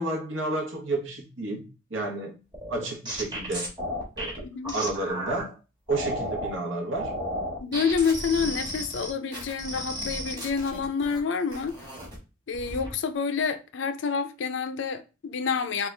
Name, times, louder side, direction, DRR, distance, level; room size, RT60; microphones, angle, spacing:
voice 1, 0.0-2.4 2.7-3.7 4.2-4.4 4.7-5.6 5.9-7.1, right 2 dB, 80° right, 1.0 m, -31 dB
sound 1, 2.5-5.4 5.9-6.5 6.9-11.2 11.5-12.2 12.5-12.9, equal, 20° right, 1.1 m, -34 dB
voice 2, 4.4-4.7 7.6-11.9 12.5-15.9, left 5 dB, 65° left, 0.4 m, -28 dB
3.7 x 2.4 x 3.2 m
head